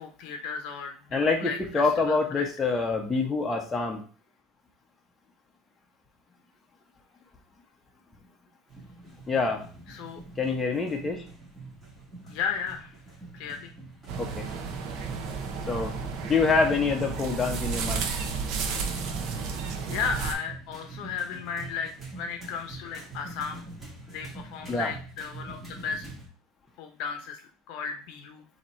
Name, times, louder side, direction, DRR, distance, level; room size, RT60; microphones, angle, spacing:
voice 1, 0.0-2.5 9.9-10.2 12.2-12.9 13.3-13.7 19.9-23.7 24.0-26.1 26.8-28.5, left 6 dB, 60° left, 4 dB, 0.8 m, -35 dB
voice 2, 1.1-4.0 9.3-9.7 10.4-11.2 14.2-14.5 15.7-16.0 16.2-18.1 24.7-24.9, left 4 dB, 15° left, 1 dB, 0.9 m, -26 dB
sound 1, 8.7-26.3, right 2 dB, 15° right, 1.9 m, -45 dB
sound 2, 14.1-20.3, right 5 dB, 55° right, 0.7 m, -32 dB
4.2 x 2.9 x 4.3 m, 0.38 s
supercardioid pair, 135°, 0 cm